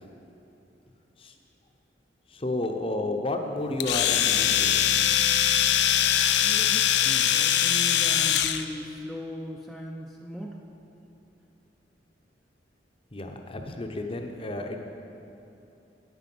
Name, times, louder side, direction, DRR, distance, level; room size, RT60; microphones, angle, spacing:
voice 1, 2.3-5.0 13.1-14.8, left 2 dB, 30° left, 4 dB, 0.8 m, -32 dB
Domestic sounds home sounds, 3.8-8.6, left 10 dB, 65° left, 0.4 m, -22 dB
voice 2, 6.4-10.6, equal, ahead, -1 dB, 0.5 m, -38 dB
9.2 x 9.0 x 6.0 m, 2.8 s
head